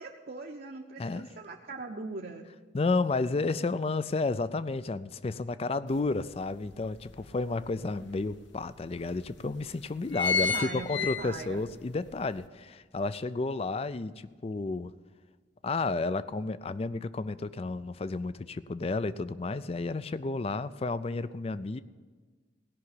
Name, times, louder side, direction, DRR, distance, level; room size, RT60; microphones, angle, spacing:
voice 1, 0.0-2.5 10.3-11.6, right 3 dB, 50° right, 1 dB, 0.7 m, -40 dB
voice 2, 1.0-1.3 2.7-14.9 15.6-21.8, left 3 dB, 30° left, 16 dB, 0.4 m, -32 dB
sound 1, 5.9-6.0 6.5-7.7 8.3-8.4 8.6-8.7 9.4-9.6 9.9-11.7 12.1-12.2, left 5 dB, 80° left, 1.0 m, -30 dB
17.0 x 5.8 x 9.6 m, 1.4 s
head